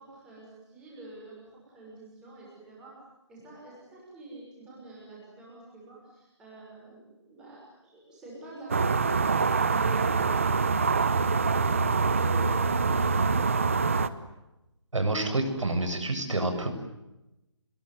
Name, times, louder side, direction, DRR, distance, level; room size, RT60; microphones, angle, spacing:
voice 1, 0.0-2.9 3.3-13.5, right 2 dB, 5° right, -5 dB, 6.2 m, -46 dB
sound 1, 8.7-14.1, right 4 dB, 25° right, 0.9 m, -25 dB
voice 2, 14.9-16.7, right 2 dB, 80° right, 6 dB, 7.6 m, -28 dB
27.5 x 22.0 x 9.5 m, 0.96 s
hypercardioid pair, 175°, 16 cm